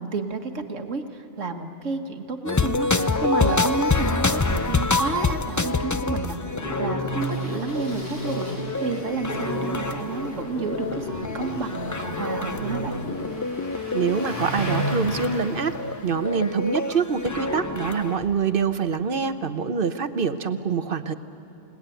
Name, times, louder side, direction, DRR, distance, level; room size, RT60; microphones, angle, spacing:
voice 1, 0.0-8.4 8.8-13.0, right 4 dB, 85° right, 6 dB, 1.8 m, -31 dB
sound 1, 2.5-18.2, left 3 dB, 25° left, 0.4 m, -27 dB
sound 2, 6.4-13.4, equal, 50° left, 1.7 m, -33 dB
Engine starting, 7.2-18.3, equal, 80° left, 5.1 m, -38 dB
voice 2, 13.9-15.8 16.0-21.1, right 6 dB, 50° right, 10 dB, 1.0 m, -25 dB
29.0 x 19.0 x 9.2 m, 2.8 s
omnidirectional pair, 1.3 m